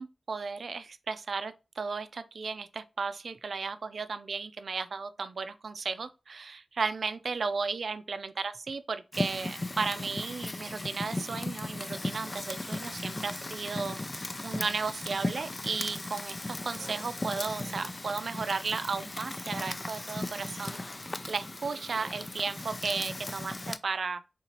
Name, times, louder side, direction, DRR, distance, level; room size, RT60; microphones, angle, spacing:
voice 1, 0.0-24.3, right 4 dB, 75° right, 0.3 m, -35 dB
Fire, 9.1-23.8, left 2 dB, 30° left, 0.3 m, -37 dB
3.7 x 2.9 x 2.8 m
wide cardioid pair, 70°, 0 cm